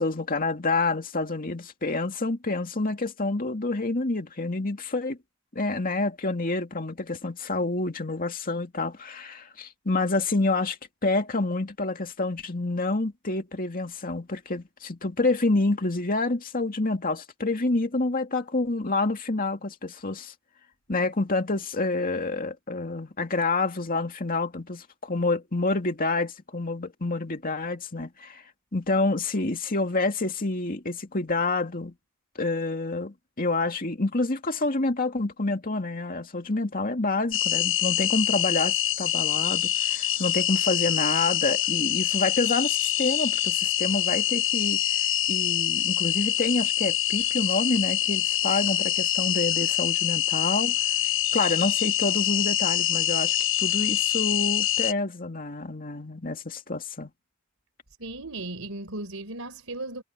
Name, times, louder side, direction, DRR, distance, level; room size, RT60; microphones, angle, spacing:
voice 1, 0.0-5.2 5.5-10.8 11.0-20.3 20.9-28.4 28.7-31.9 32.4-50.7 51.0-57.1, left 3 dB, 40° left, 2.3 m, -28 dB
sound 1, 37.3-54.9, left 12 dB, 65° left, 1.3 m, -25 dB
voice 2, 58.0-60.0, right 2 dB, 75° right, 4.0 m, -36 dB
head